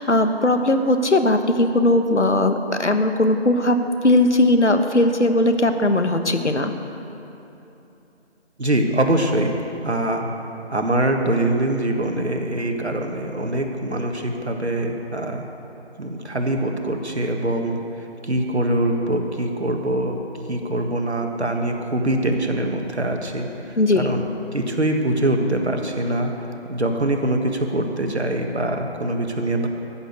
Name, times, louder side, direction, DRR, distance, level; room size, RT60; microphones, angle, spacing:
voice 1, 0.0-3.8 4.0-6.7 23.8-24.1, left 1 dB, 90° left, 7 dB, 1.2 m, -18 dB
voice 2, 8.6-9.6 9.8-10.3 10.7-15.4 16.0-20.2 20.5-24.2 24.5-26.3 26.7-29.7, right 1 dB, 70° right, 3 dB, 1.7 m, -23 dB
14.5 x 7.3 x 8.0 m, 2.9 s
figure-of-eight pair, 170°, 34 cm